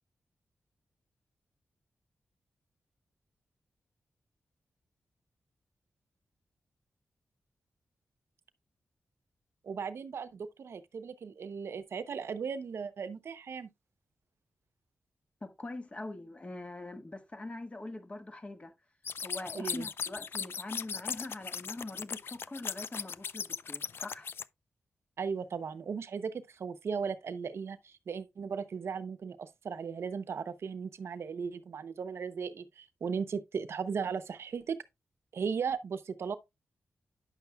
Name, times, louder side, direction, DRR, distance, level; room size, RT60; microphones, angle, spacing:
voice 1, 9.6-13.7 19.5-19.9 25.2-34.8 35.3-36.4, right 6 dB, 75° right, 0.7 m, -37 dB
voice 2, 15.4-18.7 19.2-24.3, left 2 dB, 30° left, 1.5 m, -43 dB
sound 1, 19.0-24.4, left 6 dB, 60° left, 0.3 m, -38 dB
9.8 x 6.9 x 2.3 m
cardioid pair, 85°, 4 cm